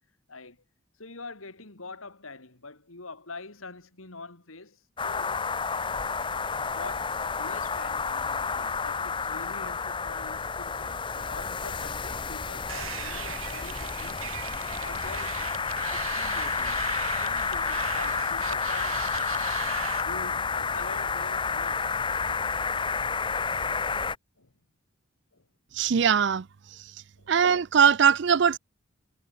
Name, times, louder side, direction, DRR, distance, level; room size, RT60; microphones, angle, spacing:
voice 1, 0.3-0.6 1.0-5.5 6.6-15.4 15.9-19.0 20.0-22.0 24.4-24.5 25.3-25.5 27.2-27.3, left 3 dB, 85° left, 3.1 m, -45 dB
sound 1, 5.0-24.2, left 5 dB, 25° left, 0.8 m, -30 dB
sound 2, 12.7-20.0, right 9 dB, 85° right, 3.8 m, -39 dB
voice 2, 25.7-26.5 26.7-26.8 27.3-28.6, right 7 dB, 55° right, 0.4 m, -21 dB
head